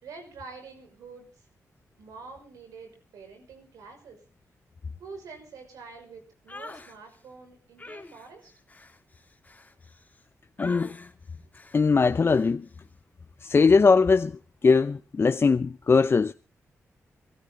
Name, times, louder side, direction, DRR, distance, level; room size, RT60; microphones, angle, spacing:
voice 1, 0.0-1.5 2.0-4.2 5.0-8.5, right 4 dB, 90° right, 5.9 m, -46 dB
sound 1, 6.5-7.0 7.8-10.2 10.6-11.1 11.5-11.9 12.3-12.5, left 2 dB, 25° left, 2.7 m, -45 dB
voice 2, 10.6-11.0 11.7-12.7 13.4-16.3, left 4 dB, 45° left, 0.7 m, -21 dB
25.5 x 12.5 x 3.9 m
cardioid pair, 55°, 6 cm